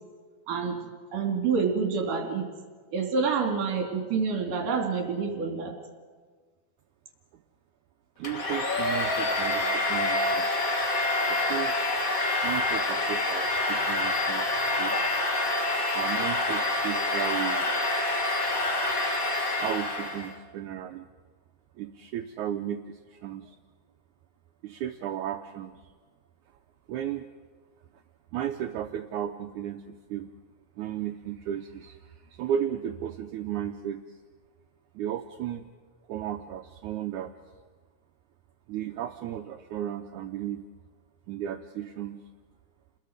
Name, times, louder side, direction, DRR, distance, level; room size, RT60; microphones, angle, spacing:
voice 1, 0.5-0.8 1.1-2.5 2.9-5.7, right 5 dB, 60° right, 3 dB, 4.1 m, -27 dB
Domestic sounds home sounds, 8.2-20.3, left 2 dB, 35° left, 1.4 m, -27 dB
voice 2, 8.2-10.5 11.3-11.7 12.4-15.0 15.9-17.7 19.6-21.1 21.8-23.6 24.6-25.8 26.5-26.6 26.9-27.3 28.3-30.3 30.8-34.2 34.9-35.7 36.1-37.3 38.7-40.7 41.3-42.2, right 10 dB, 85° right, 5 dB, 1.7 m, -34 dB
29.5 x 21.0 x 5.0 m, 1.5 s
omnidirectional pair, 4.4 m